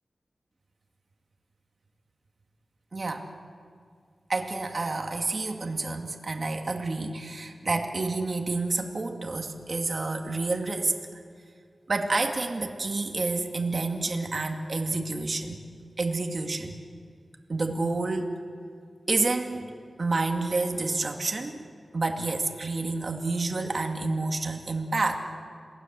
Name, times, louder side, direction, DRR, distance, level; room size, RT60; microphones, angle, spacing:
voice 1, 2.9-3.3 4.3-10.9 11.9-15.6 16.0-16.8 17.5-18.4 19.1-19.7 20.0-21.6 21.9-25.2, right 3 dB, 55° right, 3 dB, 2.6 m, -29 dB
28.0 x 19.5 x 7.8 m, 2.1 s
wide cardioid pair, 80°, 0 cm